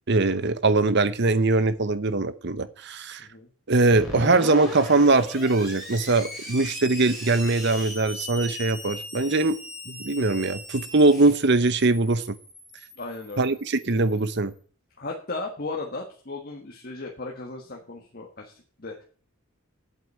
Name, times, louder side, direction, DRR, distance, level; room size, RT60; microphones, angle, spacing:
voice 1, 0.1-3.3 3.7-9.6 9.9-12.3 13.4-14.5, right 3 dB, 50° right, 14 dB, 0.9 m, -22 dB
Screech, 3.9-14.4, left 1 dB, ahead, 3.9 m, -39 dB
voice 2, 13.0-13.5 15.0-18.5 18.8-19.0, left 3 dB, 45° left, 1 dB, 1.5 m, -36 dB
8.3 x 7.8 x 8.5 m, 0.42 s
head